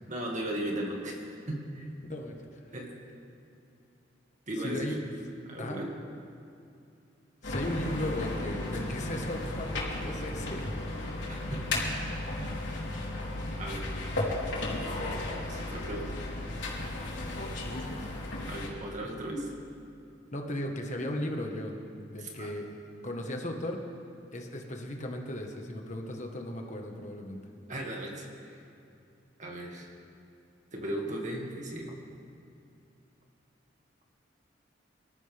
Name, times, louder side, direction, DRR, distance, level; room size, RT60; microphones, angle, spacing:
voice 1, 0.1-1.9 2.7-2.9 4.5-4.9 5.5-5.9 11.3-12.5 13.6-13.9 15.3-16.2 18.5-19.5 22.2-22.5 27.7-28.6 29.4-29.9 30.7-32.0, right 1 dB, 40° right, -1 dB, 2.2 m, -37 dB
voice 2, 2.1-2.6 4.6-5.0 5.6-5.8 7.4-10.6 17.6-18.1 20.3-21.7 22.1-22.7 23.0-23.8 24.3-27.4, left 1 dB, 40° left, 2 dB, 1.5 m, -36 dB
sound 1, 7.4-18.7, left 2 dB, 80° left, 3.7 m, -34 dB
25.0 x 13.5 x 3.5 m, 2.6 s
head